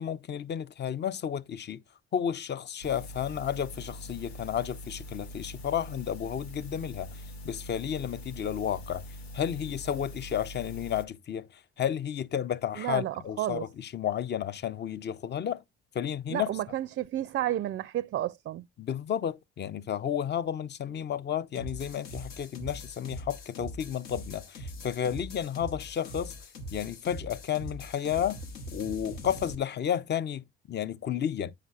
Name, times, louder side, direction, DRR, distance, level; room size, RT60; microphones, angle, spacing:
voice 1, 0.0-1.8 2.1-9.0 9.3-15.6 15.9-16.5 18.8-26.3 26.7-28.4 28.7-31.5, left 9 dB, 35° left, 0.6 m, -32 dB
sound 1, 2.8-11.0, left 1 dB, 90° left, 0.6 m, -43 dB
voice 2, 12.8-13.6 16.3-18.6, right 13 dB, 40° right, 0.4 m, -31 dB
sound 2, 21.6-29.6, left 1 dB, 70° left, 1.1 m, -42 dB
9.3 x 5.7 x 2.4 m
figure-of-eight pair, 45°, 31 cm